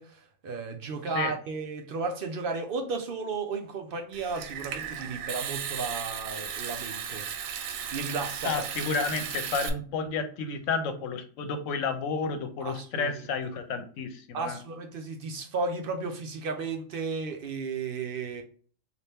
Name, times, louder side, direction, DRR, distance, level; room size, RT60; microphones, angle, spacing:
voice 1, 0.0-7.3 7.9-8.6 12.6-13.1 14.3-18.4, right 4 dB, 65° right, 5 dB, 0.5 m, -34 dB
Water tap faucet / Sink (filling or washing) / Trickle dribble, 4.1-9.7, right 8 dB, 85° right, 1.0 m, -35 dB
voice 2, 8.4-14.6, left 5 dB, 75° left, 8 dB, 1.0 m, -31 dB
4.1 x 2.5 x 3.4 m, 0.43 s
omnidirectional pair, 1.4 m